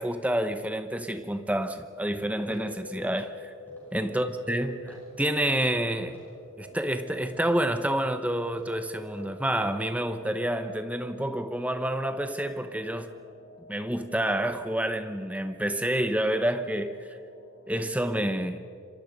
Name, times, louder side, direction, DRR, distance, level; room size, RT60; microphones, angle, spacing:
voice 1, 0.0-3.5 3.9-6.2 6.6-13.2 13.7-17.0 17.7-18.6, right 1 dB, 5° right, 1.0 m, -28 dB
sound 1, 2.4-2.8 3.0-3.3 3.7-4.0 4.2-4.6 4.9-5.2 5.5-5.8 6.1-6.4 6.7-7.0 7.3-7.6 7.9-8.2 8.5-8.8 9.1-9.2, left 1 dB, 10° left, 6.6 m, -54 dB
sound 2, 2.5-17.8, left 2 dB, 80° left, 2.6 m, -50 dB
27.0 x 24.0 x 5.3 m
head